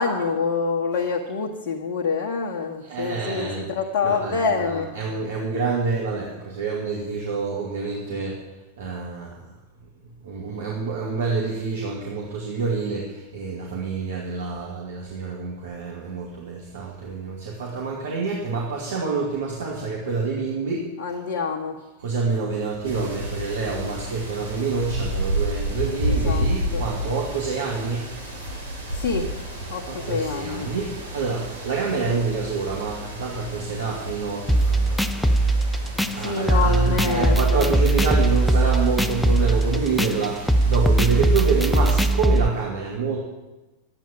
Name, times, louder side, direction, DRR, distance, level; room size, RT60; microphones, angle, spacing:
voice 1, 0.0-4.9 21.0-21.8 26.1-26.8 28.9-29.4 29.7-30.7 36.2-37.8, left 5 dB, 50° left, -1 dB, 1.5 m, -26 dB
voice 2, 2.8-3.6 4.0-8.4 8.8-9.5 10.2-20.9 22.0-28.1 29.9-43.2, right 4 dB, 60° right, -3 dB, 2.4 m, -27 dB
sound 1, 22.8-42.1, equal, 80° right, 3.2 m, -32 dB
sound 2, 34.5-42.5, right 2 dB, 5° left, 0.6 m, -20 dB
12.0 x 9.1 x 7.4 m, 1.1 s
figure-of-eight pair, 90°, 0 cm